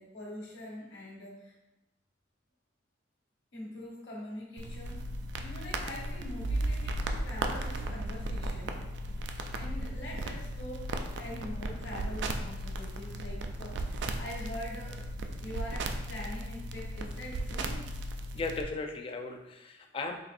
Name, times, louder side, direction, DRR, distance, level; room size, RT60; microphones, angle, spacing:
voice 1, 0.0-1.5 3.5-5.1 5.4-8.8 9.5-15.0 15.4-17.8, left 1 dB, 70° left, -4 dB, 1.1 m, -44 dB
sound 1, 4.6-18.6, right 1 dB, 65° right, 0.3 m, -36 dB
voice 2, 18.3-20.2, left 3 dB, 30° left, 4 dB, 0.3 m, -36 dB
4.0 x 3.0 x 2.5 m, 0.98 s
head